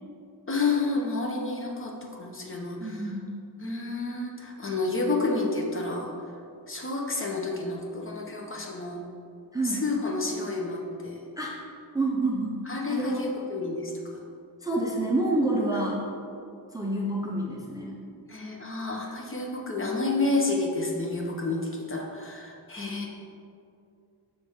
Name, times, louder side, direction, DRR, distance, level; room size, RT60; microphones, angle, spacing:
voice 1, 0.5-1.9 2.2-3.0 3.6-6.1 6.7-9.0 9.7-11.2 12.7-13.9 18.3-23.1, left 3 dB, 30° left, 0 dB, 0.9 m, -30 dB
voice 2, 2.8-3.3 9.5-9.9 11.4-11.5 11.9-13.2 14.6-16.0 16.7-18.0, right 2 dB, 10° right, -2 dB, 0.6 m, -28 dB
6.8 x 5.9 x 3.6 m, 2.5 s
wide cardioid pair, 135°, 39 cm